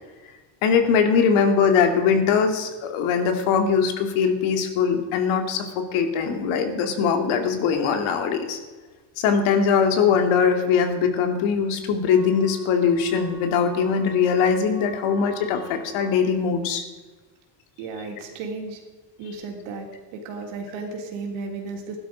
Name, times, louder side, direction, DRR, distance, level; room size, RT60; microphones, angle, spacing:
voice 1, 0.6-8.6 9.2-16.8, left 6 dB, 80° left, 6 dB, 2.6 m, -21 dB
Wind instrument woodwind instrument, 12.0-16.3, left 1 dB, 20° left, 3.8 m, -38 dB
voice 2, 17.8-18.8 19.2-19.9 20.1-22.0, right 4 dB, 85° right, 2 dB, 3.6 m, -34 dB
16.0 x 12.0 x 5.1 m, 1.3 s
cardioid pair, 145°, 48 cm